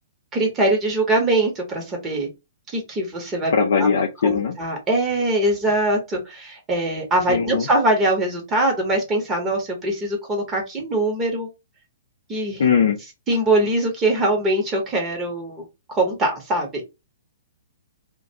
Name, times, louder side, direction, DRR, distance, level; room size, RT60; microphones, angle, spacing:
voice 1, 0.3-2.3 2.7-3.5 3.8-3.9 4.2-11.5 12.3-12.6 13.3-16.8, right 1 dB, 20° right, 0.9 m, -22 dB
voice 2, 3.5-4.6 7.3-7.7 12.6-13.0, left 6 dB, 60° left, 0.4 m, -20 dB
2.3 x 2.2 x 2.7 m
figure-of-eight pair, 115°, 0 cm